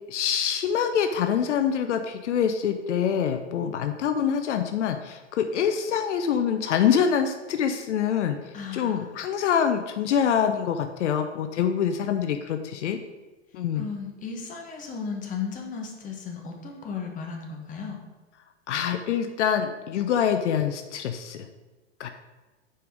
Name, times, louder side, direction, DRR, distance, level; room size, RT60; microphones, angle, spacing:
voice 1, 0.1-8.4 8.7-13.0 13.5-13.9 18.7-21.5 22.0-22.1, left 8 dB, 75° left, 7 dB, 0.6 m, -25 dB
voice 2, 8.5-9.0 13.7-18.0, left 5 dB, 20° left, 1 dB, 1.2 m, -35 dB
4.9 x 4.4 x 5.2 m, 1.2 s
hypercardioid pair, 115°, 36 cm